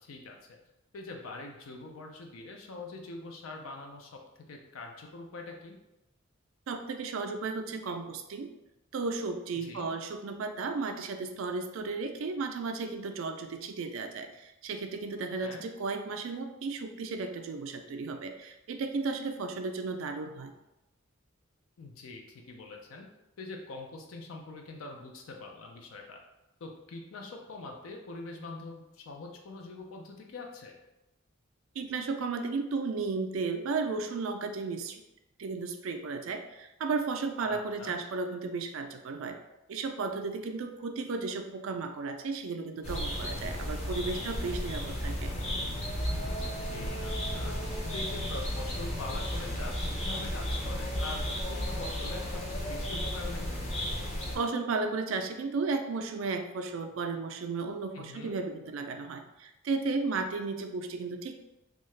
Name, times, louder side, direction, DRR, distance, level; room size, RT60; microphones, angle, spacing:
voice 1, 0.0-0.6 0.9-4.2 4.5-5.8 9.6-9.9 15.4-15.6 21.8-23.1 23.4-26.2 26.6-30.8 37.4-38.0 46.4-47.6 47.9-51.2 51.5-53.6 57.9-58.3, left 3 dB, 75° left, 2 dB, 0.4 m, -44 dB
voice 2, 6.7-8.5 8.9-20.5 31.8-35.0 35.4-39.4 39.7-45.3 54.3-61.4, right 4 dB, 70° right, 6 dB, 0.3 m, -34 dB
sound 1, 42.8-54.4, equal, 30° left, 0.6 m, -34 dB
2.7 x 2.3 x 3.1 m, 0.94 s
head